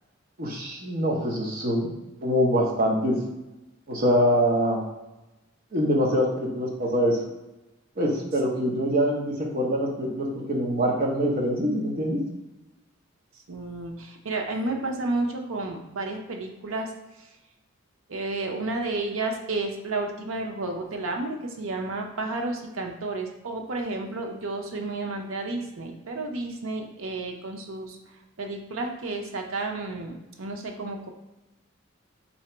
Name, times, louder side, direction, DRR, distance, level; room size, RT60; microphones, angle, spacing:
voice 1, 0.4-1.9 2.2-3.2 3.9-4.8 5.7-7.2 8.0-12.2, equal, 45° right, -2 dB, 0.8 m, -24 dB
voice 2, 13.5-16.9 17.2-17.3 18.1-28.0 28.4-31.1, right 2 dB, 80° right, 3 dB, 0.6 m, -31 dB
2.9 x 2.8 x 4.4 m, 1.0 s
head